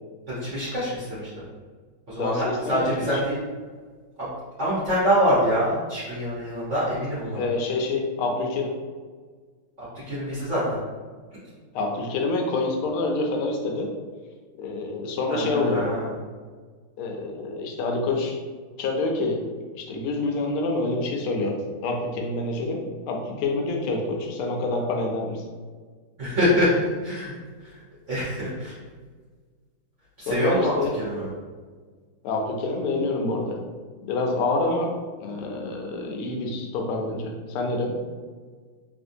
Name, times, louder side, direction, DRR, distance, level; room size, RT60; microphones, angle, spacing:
voice 1, 0.3-1.4 2.1-3.4 4.2-4.3 4.6-7.4 10.1-10.8 15.3-16.1 26.2-27.7 28.1-28.7 30.2-31.3, equal, 50° right, -10 dB, 0.9 m, -25 dB
voice 2, 2.2-3.1 7.3-8.7 11.7-13.9 14.6-15.8 17.0-18.4 18.8-19.4 19.7-22.8 23.1-25.4 30.2-30.9 32.2-33.6 34.0-34.9 35.2-37.9, left 2 dB, 80° left, 1 dB, 1.4 m, -27 dB
3.4 x 2.6 x 2.6 m, 1.5 s
omnidirectional pair, 2.3 m